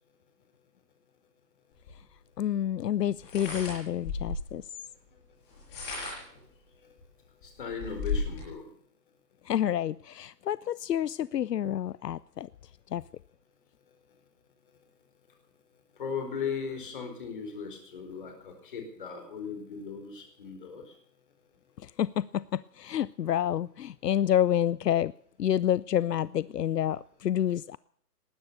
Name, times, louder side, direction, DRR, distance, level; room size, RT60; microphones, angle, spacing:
sound 1, 1.9-2.0 3.2-4.6 5.5-6.4 7.0-7.1 7.4-8.5, left 4 dB, 15° left, 6.2 m, -34 dB
voice 1, 2.4-4.7 9.4-12.5 12.9-13.0 21.8-25.1 25.4-27.8, left 10 dB, 80° left, 20 dB, 0.6 m, -28 dB
voice 2, 7.4-8.7 16.0-20.8, left 6 dB, 30° left, 5 dB, 4.3 m, -37 dB
19.5 x 11.0 x 6.6 m, 0.62 s
hypercardioid pair, 175°, 48 cm